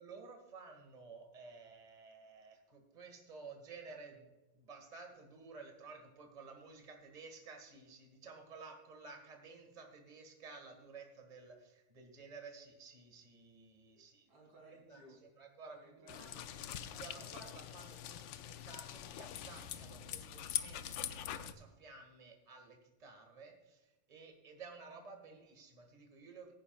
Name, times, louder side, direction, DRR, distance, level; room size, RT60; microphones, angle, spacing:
voice 1, 0.0-4.3 4.5-14.3 14.9-15.0 15.4-16.3 17.0-26.5, right 4 dB, 20° right, 3 dB, 1.8 m, -54 dB
voice 2, 13.9-15.2 15.7-17.3 25.2-25.4, right 2 dB, 65° right, -1 dB, 4.4 m, -61 dB
sound 1, 16.1-21.5, left 10 dB, 75° left, 1.3 m, -43 dB
17.0 x 10.0 x 2.4 m, 1.0 s
omnidirectional pair, 2.3 m